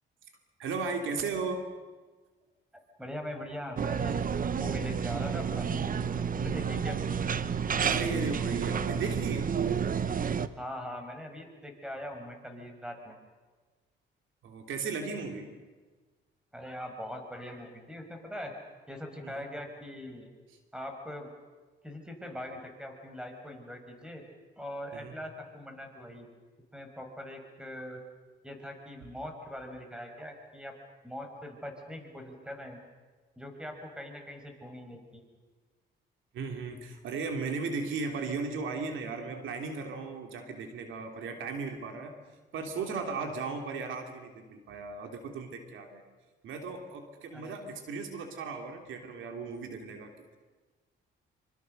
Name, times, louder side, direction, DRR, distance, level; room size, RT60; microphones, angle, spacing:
voice 1, 0.6-1.6 7.8-9.5 14.4-15.5 19.2-19.4 24.9-25.2 36.3-42.1 42.5-46.0 46.4-50.4, right 4 dB, 80° right, 4 dB, 3.1 m, -36 dB
voice 2, 2.7-4.2 4.6-7.0 10.6-13.2 16.5-18.5 18.9-20.3 20.7-21.3 21.8-24.2 24.6-26.3 26.7-28.0 28.4-30.7 31.0-32.8 33.4-35.2 47.3-47.5, left 1 dB, 5° right, 4 dB, 5.6 m, -41 dB
sound 1, 3.8-10.5, right 7 dB, 45° right, 1.1 m, -30 dB
26.0 x 25.5 x 6.7 m, 1.3 s
cardioid pair, 90°, 20 cm